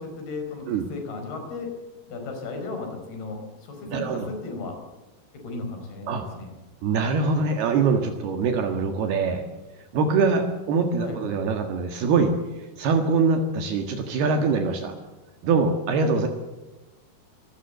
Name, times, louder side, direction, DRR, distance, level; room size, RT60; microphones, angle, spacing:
voice 1, 0.0-1.7 2.1-4.8 5.3-6.5 11.0-11.2, left 3 dB, 65° left, 3 dB, 6.6 m, -35 dB
voice 2, 3.9-4.3 6.1-6.2 6.8-9.4 9.9-15.0 15.4-16.3, right 4 dB, 70° right, 5 dB, 3.6 m, -23 dB
25.0 x 17.5 x 8.1 m, 1.1 s
omnidirectional pair, 4.8 m